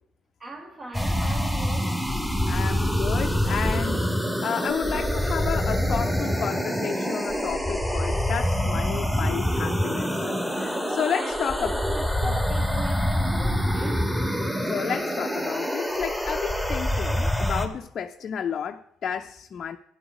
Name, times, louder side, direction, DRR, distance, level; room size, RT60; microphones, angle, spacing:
voice 1, 0.4-2.0 10.7-14.2, right 1 dB, 30° right, 1.6 m, -39 dB
sound 1, 0.9-17.7, equal, 5° right, 2.4 m, -26 dB
voice 2, 2.5-11.7 14.6-19.8, left 8 dB, 50° left, 0.6 m, -32 dB
11.5 x 9.8 x 4.9 m
hypercardioid pair, 55°, 0 cm